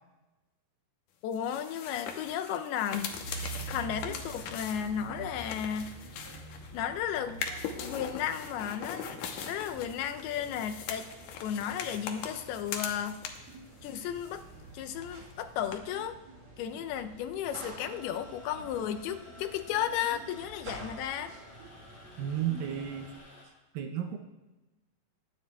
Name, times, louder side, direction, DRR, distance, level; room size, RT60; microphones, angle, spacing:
voice 1, 1.2-6.0 6.7-7.4 7.8-11.1 11.4-13.2 13.8-14.4 14.7-16.2 16.6-21.3, left 9 dB, 90° left, 8 dB, 2.6 m, -34 dB
sound 1, 1.3-6.8 7.3-13.6 13.8-14.7 15.0-15.1 15.7-15.8, left 7 dB, 75° left, 2.2 m, -41 dB
sound 2, 3.2-23.2, right 3 dB, 55° right, 4.0 m, -47 dB
sound 3, 17.8-23.4, left 2 dB, 25° left, 3.7 m, -52 dB
voice 2, 22.2-23.1 23.7-24.2, right 9 dB, 75° right, 5 dB, 2.3 m, -34 dB
22.5 x 9.9 x 2.3 m, 1.1 s
omnidirectional pair, 4.4 m